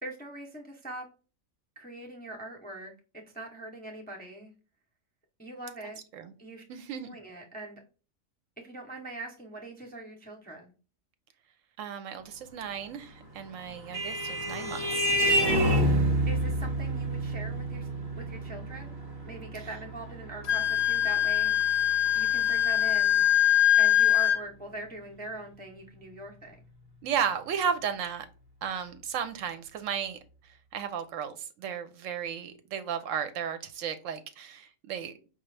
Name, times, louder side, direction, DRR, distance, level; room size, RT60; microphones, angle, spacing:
voice 1, 0.0-1.1 1.8-4.5 5.4-6.0 6.4-6.6 7.0-7.8 8.6-10.7 16.3-17.9 18.2-19.0 19.2-21.8 22.1-23.5 23.8-26.6, right 2 dB, 10° left, 0.4 m, -42 dB
voice 2, 6.7-7.1 11.8-15.1 27.0-28.3 28.6-30.2 30.7-35.1, right 7 dB, 75° right, 0.9 m, -34 dB
Vehicle horn car horn honking, 13.3-22.3, equal, 20° right, 0.7 m, -29 dB
Wind instrument woodwind instrument, 20.4-24.4, left 11 dB, 75° left, 0.9 m, -23 dB
4.9 x 2.3 x 3.2 m
omnidirectional pair, 1.4 m